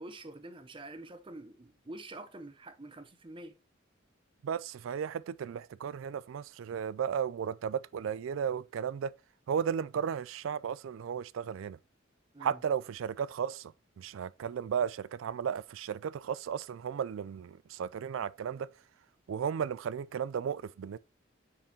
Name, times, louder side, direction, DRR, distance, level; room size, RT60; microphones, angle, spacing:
voice 1, 0.0-3.6 12.3-12.6, right 2 dB, 25° right, 0.7 m, -46 dB
voice 2, 4.4-9.1 9.5-11.8 12.4-18.7 19.3-21.0, right 7 dB, 90° right, 0.3 m, -34 dB
6.7 x 5.7 x 2.8 m
head